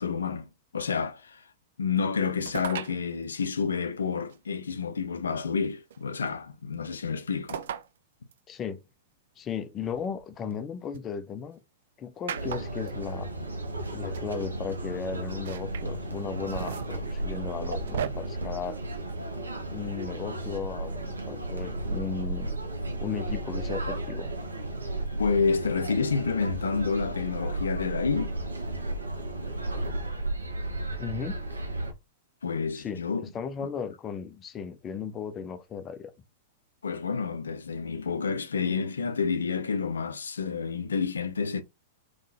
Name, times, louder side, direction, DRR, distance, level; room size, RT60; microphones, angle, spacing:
voice 1, 0.0-1.4 1.8-7.6 25.1-28.4 32.4-33.2 36.8-41.6, left 5 dB, 70° left, 0.5 m, -29 dB
sound 1, 2.5-3.0 4.3-4.4 5.9-6.3 7.5-7.9 8.3-8.4 9.8-11.0 12.3-12.9 13.9-14.0 14.1-14.3 15.3-15.9 16.3-18.1, right 9 dB, 60° right, 0.3 m, -36 dB
voice 2, 8.5-8.8 9.4-11.6 12.0-13.3 13.9-18.8 19.7-22.5 23.0-24.3 31.0-31.4 32.7-36.1, left 6 dB, 25° left, 0.6 m, -36 dB
sound 2, 12.3-31.9, right 2 dB, 80° right, 0.8 m, -34 dB
3.7 x 3.1 x 2.6 m
figure-of-eight pair, 100°, 0 cm